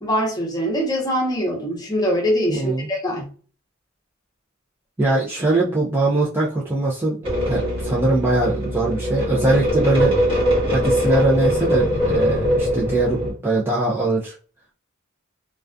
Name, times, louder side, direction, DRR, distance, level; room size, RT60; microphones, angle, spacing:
voice 1, 0.0-3.3, equal, 20° left, -2 dB, 0.7 m, -23 dB
voice 2, 2.5-2.9 5.0-10.2 10.7-14.3, right 2 dB, 10° right, -6 dB, 0.3 m, -21 dB
sound 1, 7.2-13.3, equal, 25° right, 1.0 m, -21 dB
2.3 x 2.3 x 2.4 m, 0.39 s
head